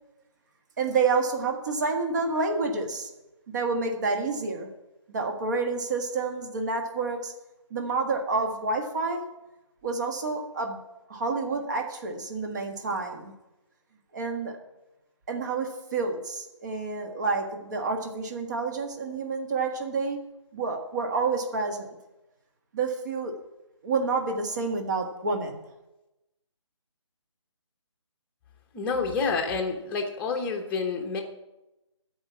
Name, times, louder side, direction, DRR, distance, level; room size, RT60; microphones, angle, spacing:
voice 1, 0.8-3.1 3.5-4.7 5.1-7.3 7.7-9.2 9.8-10.8 11.1-13.3 14.1-14.6 15.3-20.2 20.5-21.9 22.7-23.4 23.8-25.6, right 4 dB, 35° right, 3 dB, 1.6 m, -29 dB
voice 2, 28.7-31.2, left 4 dB, 10° left, 2 dB, 1.0 m, -28 dB
13.5 x 5.0 x 8.4 m, 0.98 s
figure-of-eight pair, 155°, 16 cm